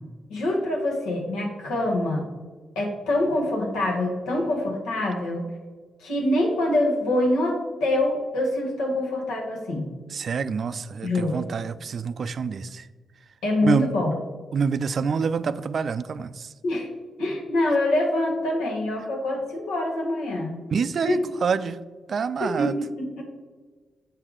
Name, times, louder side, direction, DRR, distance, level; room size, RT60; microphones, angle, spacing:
voice 1, 0.3-2.3 2.7-5.5 6.0-9.9 11.0-11.4 13.4-14.1 16.6-16.9 17.2-20.6 21.0-21.2 22.4-23.2, left 1 dB, 85° left, 0 dB, 1.3 m, -25 dB
voice 2, 10.1-12.9 13.6-13.9 14.5-16.5 20.7-21.8 22.1-22.7, right 6 dB, 60° right, 14 dB, 0.3 m, -27 dB
7.7 x 4.6 x 3.7 m, 1.4 s
supercardioid pair, 50°, 0 cm